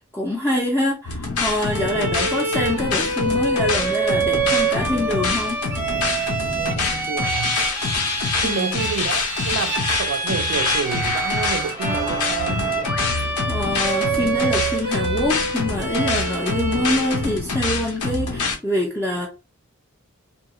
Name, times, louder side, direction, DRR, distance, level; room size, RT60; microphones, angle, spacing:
voice 1, 0.1-5.6 8.4-8.9 13.5-19.3, left 1 dB, 10° left, 0.4 m, -25 dB
sound 1, 1.1-18.6, left 4 dB, 85° left, 0.7 m, -26 dB
Bowed string instrument, 1.7-17.5, right 3 dB, 10° right, 0.7 m, -26 dB
voice 2, 6.6-7.6 8.4-12.7, right 6 dB, 60° right, 0.3 m, -29 dB
2.7 x 2.3 x 2.9 m
head